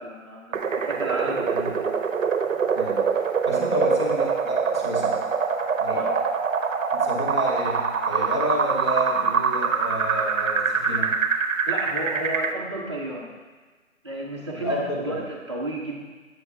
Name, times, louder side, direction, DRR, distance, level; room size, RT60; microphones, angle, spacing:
voice 1, 0.0-1.5 3.5-3.7 5.9-6.2 11.7-13.3 14.0-14.8 15.0-16.0, right 1 dB, 20° right, -6 dB, 0.7 m, -32 dB
sound 1, 0.5-12.5, right 5 dB, 75° right, 0.7 m, -24 dB
voice 2, 1.2-1.7 2.7-3.1 3.4-5.3 5.8-6.1 6.9-11.2 14.5-15.2, equal, 20° left, -4 dB, 0.9 m, -29 dB
7.8 x 6.3 x 3.2 m, 1.4 s
hypercardioid pair, 175°, 40 cm